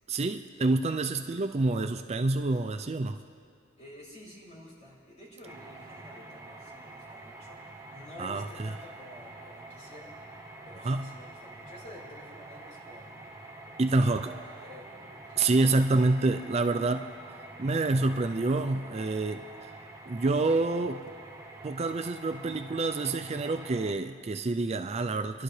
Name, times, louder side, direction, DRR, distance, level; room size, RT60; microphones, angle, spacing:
voice 1, 0.1-3.2 8.2-8.7 10.8-11.1 13.8-14.3 15.4-17.1 17.6-19.7 20.1-21.0 21.6-25.4, right 2 dB, 35° right, 7 dB, 0.4 m, -27 dB
voice 2, 3.8-10.4 10.6-13.4 13.7-15.5, left 1 dB, 40° left, -5 dB, 4.4 m, -50 dB
sound 1, 5.4-23.9, right 2 dB, 15° right, 1.3 m, -47 dB
29.0 x 11.5 x 3.3 m, 2.3 s
head